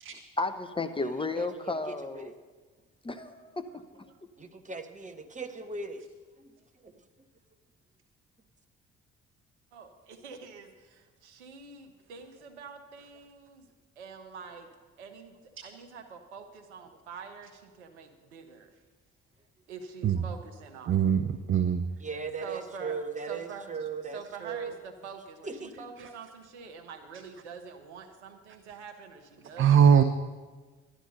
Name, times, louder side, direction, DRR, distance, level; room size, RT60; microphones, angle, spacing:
voice 1, 0.4-2.3 3.0-4.1, left 3 dB, 15° left, 8 dB, 0.8 m, -33 dB
voice 2, 1.0-2.3 4.4-6.0 6.4-6.5 6.8-6.9 22.0-24.8 25.4-26.1, right 4 dB, 20° right, 6 dB, 1.3 m, -39 dB
voice 3, 9.7-14.7 15.0-18.7 19.7-21.1 22.4-23.0 23.3-30.0, right 5 dB, 75° right, 5 dB, 1.1 m, -46 dB
voice 4, 20.9-21.8 29.6-30.0, right 8 dB, 35° right, 10 dB, 0.7 m, -21 dB
12.0 x 11.5 x 5.5 m, 1.4 s
figure-of-eight pair, 45°, 34 cm